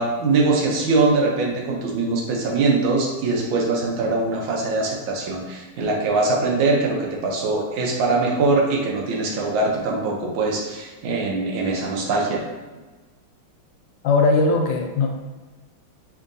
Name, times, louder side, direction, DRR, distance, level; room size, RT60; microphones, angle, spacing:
voice 1, 0.0-12.4, right 3 dB, 75° right, -1 dB, 1.5 m, -22 dB
voice 2, 14.0-15.1, left 3 dB, 75° left, 2 dB, 1.2 m, -19 dB
5.0 x 2.7 x 2.6 m, 1.2 s
omnidirectional pair, 2.2 m